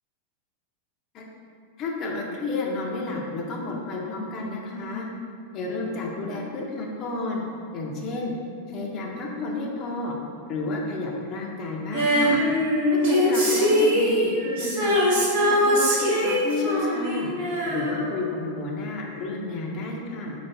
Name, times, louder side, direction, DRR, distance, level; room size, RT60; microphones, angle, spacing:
voice 1, 1.8-5.1 5.5-7.4 7.7-8.3 8.7-10.1 10.5-12.4 13.1-15.0 15.4-20.3, left 3 dB, 35° left, -1 dB, 0.7 m, -31 dB
Female singing, 11.9-18.6 18.8-18.9, equal, 55° right, 1.1 m, -22 dB
4.1 x 3.2 x 3.4 m, 2.4 s
figure-of-eight pair, 90°, 0 cm